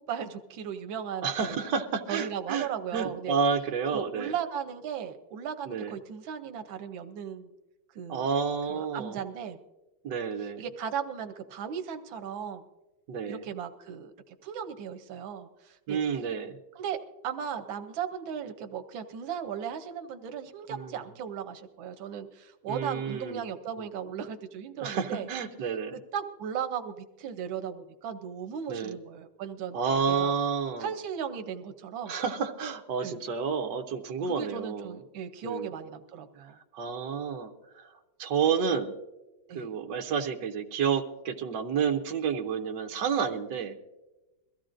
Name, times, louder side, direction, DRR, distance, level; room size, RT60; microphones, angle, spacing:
voice 1, 0.0-1.7 2.1-3.3 3.9-7.5 7.9-8.3 8.7-9.6 10.6-12.6 13.3-14.1 14.4-16.0 16.8-17.0 17.2-25.3 25.9-30.3 30.8-32.1 33.0-33.2 34.3-36.6 39.5-39.7, right 8 dB, 85° right, 7 dB, 1.6 m, -36 dB
voice 2, 1.2-4.3 5.7-6.0 8.1-9.2 10.0-10.7 13.1-13.4 15.9-16.6 20.7-21.0 22.7-23.5 23.8-23.9 24.8-26.0 28.7-29.0 29.7-30.9 32.1-35.0 35.4-35.7 36.7-37.9 38.2-38.9 39.5-43.7, right 6 dB, 70° right, 4 dB, 1.5 m, -30 dB
22.5 x 15.0 x 2.5 m, 1.1 s
omnidirectional pair, 2.1 m